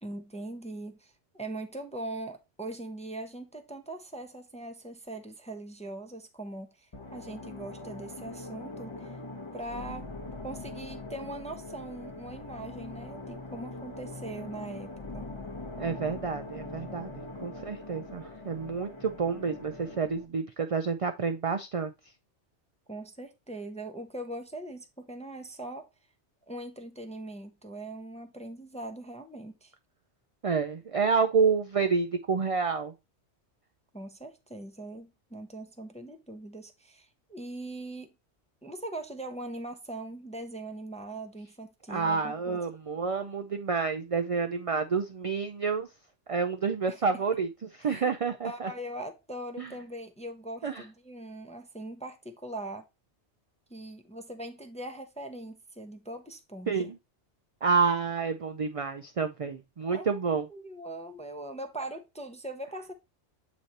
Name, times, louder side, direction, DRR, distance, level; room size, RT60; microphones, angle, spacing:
voice 1, 0.0-9.2 9.5-10.1 10.4-15.3 22.9-25.9 26.5-29.7 33.9-38.1 38.6-42.6 46.9-47.0 47.8-48.2 48.4-52.8 53.7-56.9 59.9-60.2 60.5-62.9, right 1 dB, 10° left, 0.4 m, -41 dB
sound 1, 6.9-20.3, left 2 dB, 30° left, 0.8 m, -42 dB
voice 2, 15.8-21.9 30.4-32.9 41.9-45.9 46.3-47.5 47.8-48.7 49.6-49.7 50.6-50.8 56.7-57.0 57.6-60.5, right 5 dB, 60° right, 0.3 m, -29 dB
7.8 x 3.1 x 4.1 m
omnidirectional pair, 1.2 m